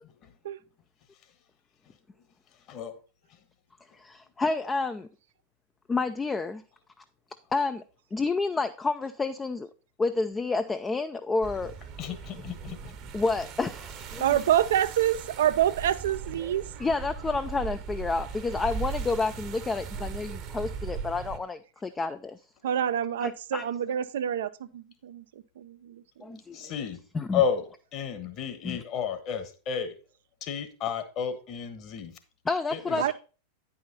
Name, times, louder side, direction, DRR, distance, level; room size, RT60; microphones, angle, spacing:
voice 1, 2.7-3.0 3.3-3.4 12.0-12.8 26.5-27.0 27.3-29.9 30.4-32.2 32.7-33.0, left 7 dB, 35° left, 1.3 m, -32 dB
voice 2, 3.9-5.1 5.9-6.6 7.0-7.1 7.5-7.8 8.1-9.7 10.0-11.8 13.1-14.4 16.8-22.4 23.2-23.6 26.2-26.7 27.1-27.4 28.6-28.8 32.5-33.1, left 3 dB, 15° left, 0.4 m, -29 dB
sound 1, 11.4-21.4, right 6 dB, 35° right, 0.9 m, -38 dB
voice 3, 14.2-16.6 22.6-25.2 25.6-26.0 33.0-33.1, right 10 dB, 60° right, 0.4 m, -26 dB
9.4 x 5.6 x 4.0 m
figure-of-eight pair, 90°, 0 cm